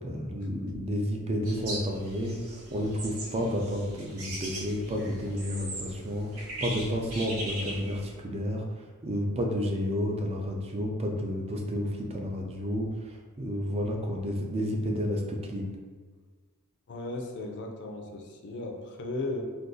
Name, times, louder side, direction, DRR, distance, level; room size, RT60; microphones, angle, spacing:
voice 1, 0.0-2.4 2.7-15.8, equal, 30° right, 1 dB, 0.4 m, -31 dB
sound 1, 1.4-8.2, right 1 dB, 80° right, 0.9 m, -40 dB
voice 2, 16.9-19.4, left 2 dB, 55° left, 2 dB, 0.4 m, -36 dB
2.5 x 2.3 x 3.7 m, 1.5 s
head